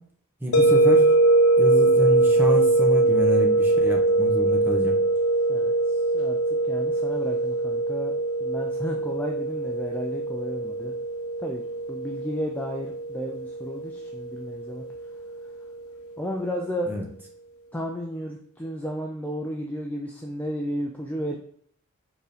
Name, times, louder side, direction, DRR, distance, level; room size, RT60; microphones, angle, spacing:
voice 1, 0.4-1.1 1.6-5.0 16.9-17.0, equal, 10° right, -1 dB, 1.1 m, -28 dB
sound 1, 0.5-15.5, right 2 dB, 75° left, 0.7 m, -22 dB
voice 2, 5.5-6.4 6.6-8.1 8.4-11.0 11.4-11.6 11.9-14.8 16.2-16.9 17.7-21.4, equal, 5° left, 0 dB, 0.4 m, -33 dB
4.9 x 3.9 x 5.0 m, 0.63 s
head